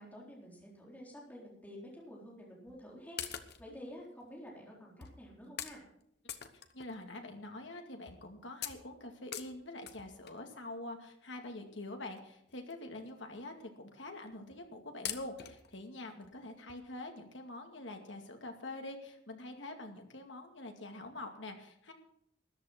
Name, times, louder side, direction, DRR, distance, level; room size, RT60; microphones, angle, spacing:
voice 1, 0.0-5.8, equal, 10° left, -3 dB, 4.0 m, -50 dB
sound 1, 2.7-2.8 3.2-3.8 4.5-4.6 5.0-5.2 5.6-5.8 6.3-7.2 7.6-7.7 8.1-8.3 8.6-10.5 11.5-11.6 12.2-12.3 12.5-12.7 13.1-13.2 13.4-13.5 14.3-14.6 15.0-15.7 16.2-16.3 16.7-16.8, left 10 dB, 60° left, 1.1 m, -44 dB
voice 2, 6.7-21.9, left 2 dB, 75° left, 4 dB, 2.3 m, -45 dB
13.5 x 11.0 x 6.0 m, 0.74 s
head